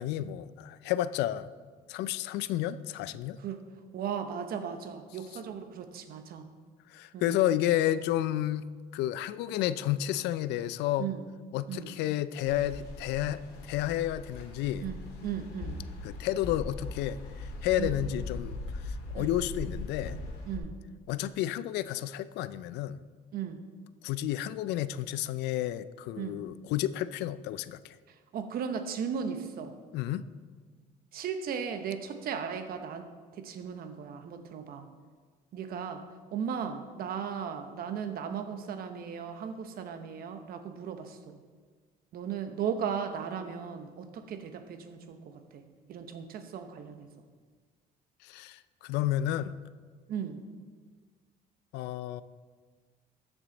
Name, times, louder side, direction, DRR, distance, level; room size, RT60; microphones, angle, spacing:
voice 1, 0.0-1.5 1.9-3.4 6.9-8.6 8.9-11.1 11.5-14.8 16.0-20.2 21.1-23.0 24.0-27.9 29.9-30.2 48.2-49.6 51.7-52.2, left 12 dB, 85° left, 15 dB, 0.4 m, -31 dB
voice 2, 3.9-6.5 7.1-7.3 11.0-11.2 11.7-11.9 14.8-15.8 17.8-18.0 19.2-19.3 20.5-20.8 23.3-23.6 26.2-26.4 28.1-29.8 31.1-33.1 33.3-34.9 35.5-36.0 36.3-41.4 42.1-45.6 45.9-47.1 50.1-50.4, right 7 dB, 60° right, 8 dB, 1.0 m, -36 dB
sound 1, 12.4-20.6, left 3 dB, 70° left, 1.9 m, -40 dB
13.5 x 6.2 x 4.0 m, 1.5 s
cardioid pair, 110°, 17 cm